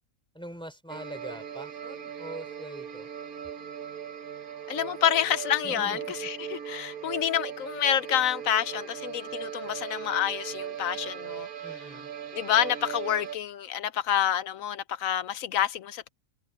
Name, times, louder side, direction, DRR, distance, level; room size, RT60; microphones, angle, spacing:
voice 1, 0.3-3.1 5.6-6.0 11.6-12.1, equal, 5° left, 3.6 m, -43 dB
sound 1, 0.9-13.4, right 9 dB, 75° right, 1.7 m, -38 dB
voice 2, 4.7-11.5 12.3-16.1, left 10 dB, 70° left, 1.0 m, -28 dB
omnidirectional pair, 1.6 m